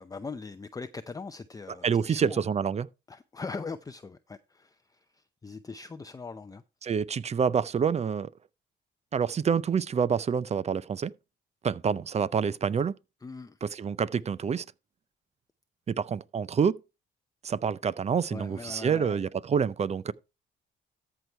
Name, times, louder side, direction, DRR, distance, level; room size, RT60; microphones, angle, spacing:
voice 1, 0.0-2.4 3.1-6.6 13.2-13.6 18.3-19.2, left 4 dB, 20° left, 0.5 m, -41 dB
voice 2, 1.8-2.9 6.8-8.3 9.1-11.1 11.6-12.9 13.6-14.6 15.9-16.8 17.4-20.1, right 6 dB, 35° right, 0.5 m, -27 dB
13.5 x 4.7 x 4.5 m
cardioid pair, 90°, 20 cm